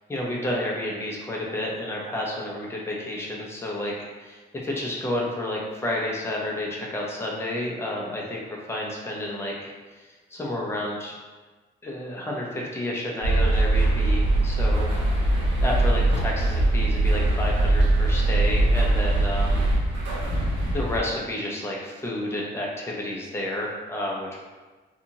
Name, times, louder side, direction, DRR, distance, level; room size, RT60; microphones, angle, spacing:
voice 1, 0.1-8.4 8.7-11.1 11.8-14.9 15.6-19.6 19.9-20.0 20.7-24.4, left 1 dB, 10° left, -3 dB, 0.6 m, -30 dB
sound 1, 13.2-21.0, right 2 dB, 70° right, 0.9 m, -22 dB
2.8 x 2.3 x 2.8 m, 1.3 s
cardioid pair, 90°, 20 cm